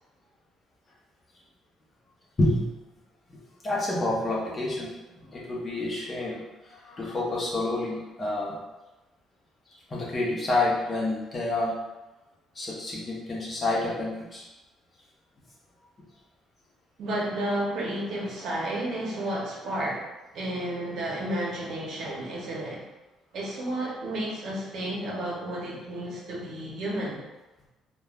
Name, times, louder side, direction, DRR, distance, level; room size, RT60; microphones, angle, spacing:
voice 1, 3.6-4.9 5.2-8.6 9.9-11.7 12.5-14.4, left 2 dB, 25° left, -4 dB, 0.7 m, -28 dB
voice 2, 17.0-22.9 23.3-27.2, right 1 dB, 60° right, -3 dB, 0.7 m, -32 dB
3.1 x 2.3 x 2.3 m, 1.1 s
cardioid pair, 120°, 0 cm